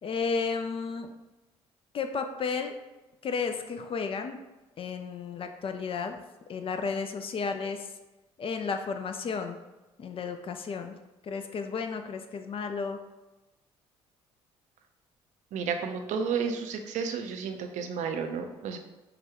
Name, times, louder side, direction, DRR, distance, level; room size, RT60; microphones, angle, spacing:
voice 1, 0.0-1.1 1.9-2.7 3.2-4.4 4.8-6.2 6.5-7.9 8.4-9.6 10.0-11.0 11.2-13.0, left 5 dB, 40° left, 6 dB, 0.4 m, -33 dB
voice 2, 15.5-18.8, right 6 dB, 60° right, 6 dB, 0.5 m, -32 dB
4.8 x 2.3 x 2.9 m, 1.0 s
hypercardioid pair, 55°, 14 cm